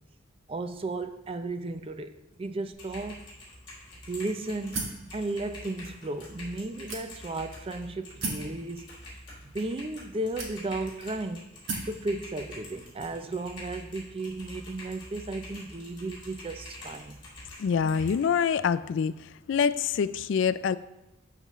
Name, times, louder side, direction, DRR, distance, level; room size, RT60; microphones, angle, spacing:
voice 1, 0.5-3.2 4.1-8.9 9.4-11.5 11.8-17.2, right 2 dB, 30° right, 9 dB, 0.4 m, -34 dB
Typing, 2.7-18.2, left 1 dB, 25° left, 3.3 m, -46 dB
sound 1, 4.7-5.1 5.9-6.0 6.9-7.4 8.2-8.5 9.5-9.6 10.4-10.9 11.7-12.0, right 3 dB, 75° right, 1.4 m, -34 dB
voice 2, 17.6-19.1 19.5-20.8, left 6 dB, 65° left, 15 dB, 0.3 m, -25 dB
12.0 x 5.9 x 3.1 m, 0.99 s
head